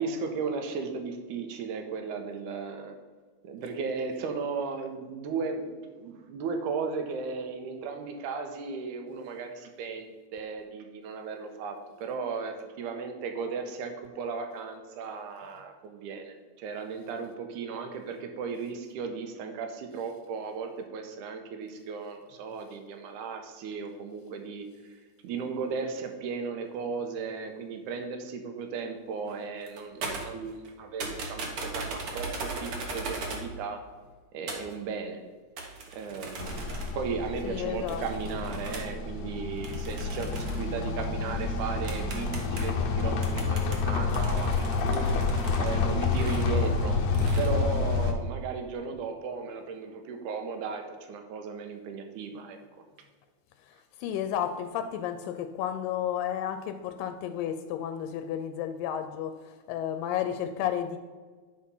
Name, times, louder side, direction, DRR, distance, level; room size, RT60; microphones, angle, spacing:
voice 1, 0.0-2.9 3.4-33.9 34.3-35.2 35.9-36.6 36.9-45.1 45.6-47.0 47.4-52.6, right 5 dB, 75° right, 5 dB, 2.3 m, -36 dB
sound 1, 29.3-29.4 29.6-30.7 31.0-33.5 34.5-34.7 35.6-37.0 37.9-38.9 39.6-40.7 41.4-41.5 41.9-42.8 43.2-45.8 46.1-46.5 47.1-47.5, right 3 dB, 55° right, 1.6 m, -39 dB
sound 2, 36.4-48.1, left 4 dB, 70° left, 1.7 m, -29 dB
voice 2, 37.4-38.0 53.6-61.0, left 10 dB, 85° left, 8 dB, 2.2 m, -32 dB
10.5 x 4.3 x 5.5 m, 1.4 s
omnidirectional pair, 3.9 m